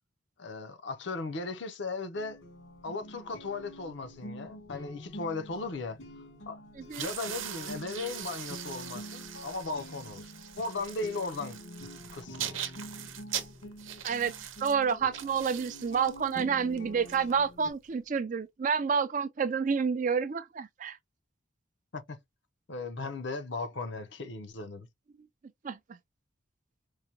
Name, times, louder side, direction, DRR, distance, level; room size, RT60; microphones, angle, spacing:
voice 1, 0.4-2.4 2.8-6.0 6.5-10.3 10.6-11.6 12.1-12.6 21.9-22.2 22.7-24.9, left 3 dB, 65° left, 0.6 m, -37 dB
sound 1, 2.1-17.7, equal, 85° left, 2.1 m, -47 dB
sound 2, 6.8-17.9, right 10 dB, 85° right, 0.8 m, -41 dB
voice 2, 14.6-21.0 25.6-25.8, right 6 dB, 40° right, 0.4 m, -29 dB
4.7 x 2.2 x 2.7 m
head